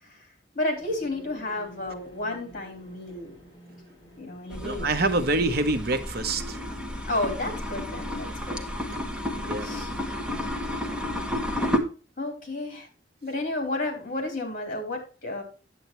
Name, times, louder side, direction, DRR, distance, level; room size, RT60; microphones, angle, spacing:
voice 1, 0.5-3.3 4.2-4.9 7.1-8.6 9.6-9.9 12.2-12.9 13.2-15.4, left 2 dB, 50° left, 3.6 m, -32 dB
sound 1, 0.8-10.0, equal, 25° left, 4.3 m, -52 dB
sound 2, 4.5-11.8, left 1 dB, 5° right, 1.1 m, -31 dB
voice 2, 4.6-6.6 9.4-9.7, right 2 dB, 60° right, 0.9 m, -26 dB
9.2 x 8.1 x 3.0 m
head